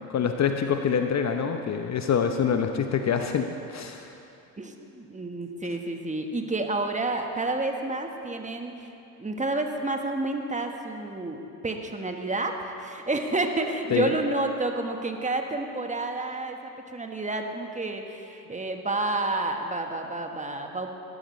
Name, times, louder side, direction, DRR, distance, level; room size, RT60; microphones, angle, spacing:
voice 1, 0.1-4.1 13.9-14.1, left 7 dB, 35° left, 6 dB, 0.9 m, -25 dB
voice 2, 4.6-8.9 9.2-16.6 16.9-20.9, right 2 dB, 15° right, 4 dB, 1.4 m, -30 dB
19.5 x 13.5 x 3.2 m, 2.7 s
hypercardioid pair, 65°, 49 cm